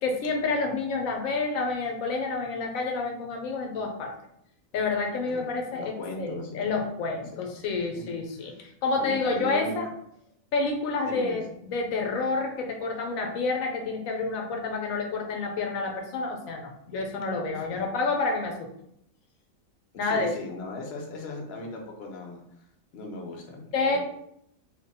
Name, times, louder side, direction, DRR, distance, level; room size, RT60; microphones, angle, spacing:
voice 1, 0.0-4.1 4.7-9.9 10.5-18.7 20.0-20.3 23.7-24.0, left 3 dB, 80° left, 2 dB, 1.0 m, -29 dB
voice 2, 5.7-6.7 7.3-7.4 8.0-8.1 8.4-8.6 8.9-9.9 11.0-11.4 17.7-17.8 20.0-22.4 22.9-24.0, left 2 dB, 55° left, 1 dB, 0.8 m, -38 dB
3.1 x 2.1 x 4.0 m, 0.74 s
omnidirectional pair, 1.4 m